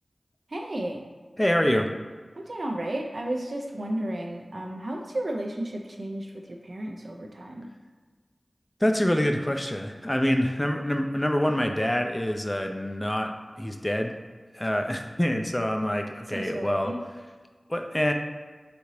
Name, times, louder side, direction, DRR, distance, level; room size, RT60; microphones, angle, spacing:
voice 1, 0.5-1.0 2.4-7.7 16.3-17.0, right 1 dB, 65° right, 1 dB, 0.5 m, -33 dB
voice 2, 1.4-1.9 8.8-14.2 14.5-16.9 17.7-18.1, equal, 20° left, 5 dB, 0.4 m, -26 dB
5.1 x 2.7 x 3.1 m, 1.5 s
wide cardioid pair, 40°, 0 cm